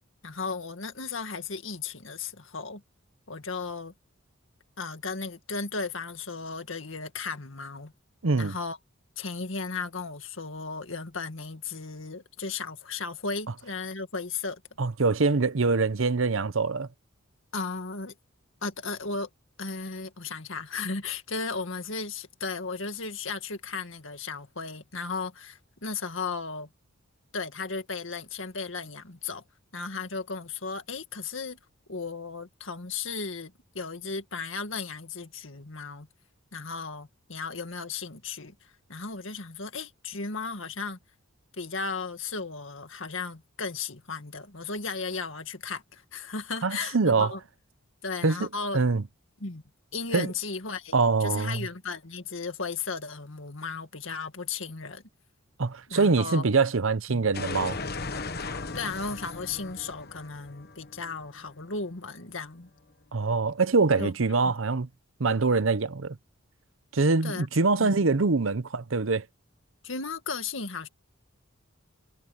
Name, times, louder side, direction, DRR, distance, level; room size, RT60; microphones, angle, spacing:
voice 1, 0.2-2.8 3.3-3.9 4.8-7.9 8.4-8.8 9.2-14.6 17.5-18.1 18.6-19.3 19.6-26.7 27.3-29.4 29.7-31.6 31.9-36.1 36.5-41.0 41.6-47.4 48.0-48.8 49.4-49.6 49.9-55.0 55.9-56.5 58.7-62.7 64.0-64.1 64.4-64.5 67.2-67.5 67.8-68.0 69.8-70.9, left 4 dB, 70° left, 2.1 m, -35 dB
voice 2, 8.2-8.6 14.8-16.9 46.6-47.3 48.2-48.5 48.7-49.0 50.1-50.3 50.9-51.7 55.6-57.8 63.1-64.9 65.2-66.2 66.9-69.2, right 4 dB, 70° right, 0.8 m, -24 dB
sound 1, 57.3-62.1, left 3 dB, 50° left, 1.3 m, -37 dB
head